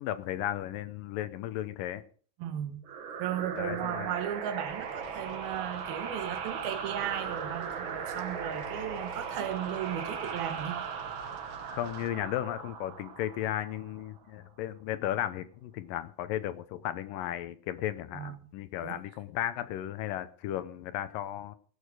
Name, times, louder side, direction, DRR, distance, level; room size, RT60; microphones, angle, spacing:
voice 1, 0.0-2.0 3.6-4.1 11.7-21.6, left 12 dB, 75° left, 2.3 m, -35 dB
voice 2, 2.4-2.8 3.2-10.9 18.1-18.4 18.8-19.0, right 10 dB, 90° right, 3.2 m, -36 dB
sound 1, 2.8-14.2, right 6 dB, 70° right, 1.2 m, -38 dB
sound 2, 4.7-12.1, right 2 dB, 50° right, 2.2 m, -52 dB
17.5 x 8.5 x 4.8 m
omnidirectional pair, 4.2 m